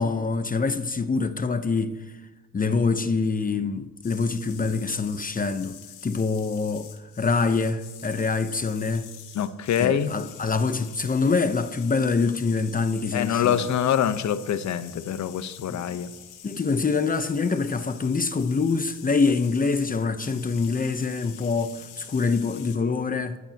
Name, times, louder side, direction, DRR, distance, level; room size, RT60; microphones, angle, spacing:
voice 1, 0.0-2.0 2.5-6.9 7.2-9.1 9.8-13.7 15.7-15.8 16.4-23.4, left 4 dB, 30° left, 0.9 m, -25 dB
sound 1, 4.0-22.8, left 9 dB, 85° left, 2.3 m, -46 dB
voice 2, 9.3-10.1 13.1-16.1, left 9 dB, 65° left, 1.1 m, -25 dB
21.5 x 14.5 x 3.0 m
cardioid pair, 90°, 30 cm